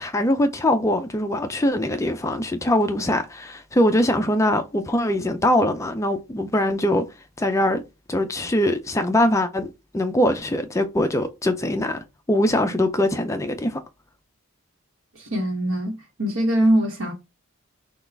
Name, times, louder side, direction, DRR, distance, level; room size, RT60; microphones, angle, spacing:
voice 1, 0.0-7.0 7.4-7.8 8.1-9.7 9.9-12.0 12.3-13.8, left 1 dB, 15° left, 0.4 m, -22 dB
voice 2, 15.1-17.1, right 1 dB, 70° right, 1.1 m, -22 dB
5.8 x 2.3 x 3.3 m
head